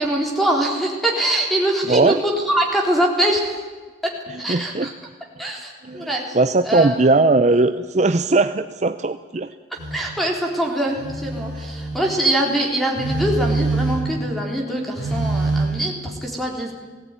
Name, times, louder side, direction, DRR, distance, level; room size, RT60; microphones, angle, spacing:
voice 1, 0.0-3.5 4.4-4.9 5.4-6.4 6.6-6.9 9.9-16.7, right 1 dB, ahead, 0 dB, 3.8 m, -23 dB
voice 2, 1.9-2.2 4.3-4.9 5.8-9.5 11.6-11.7, right 3 dB, 40° right, 10 dB, 0.6 m, -19 dB
Telephone, 9.8-10.0 11.0-12.0 13.0-14.2 15.0-15.6, right 2 dB, 85° left, 7.3 m, -24 dB
19.5 x 16.5 x 9.8 m, 1.4 s
head